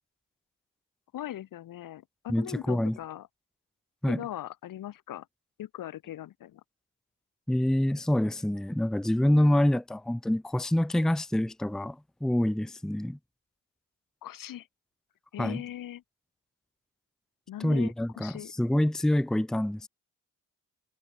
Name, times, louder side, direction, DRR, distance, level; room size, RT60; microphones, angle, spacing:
voice 1, 1.1-3.3 4.1-5.3 5.6-6.6 14.2-14.7 15.3-16.0 17.5-18.5, left 12 dB, 85° left, 2.8 m, -40 dB
voice 2, 2.3-3.0 4.0-4.2 7.5-13.2 15.4-15.6 17.6-19.9, left 1 dB, ahead, 0.6 m, -26 dB
cardioid pair, 95°, 32 cm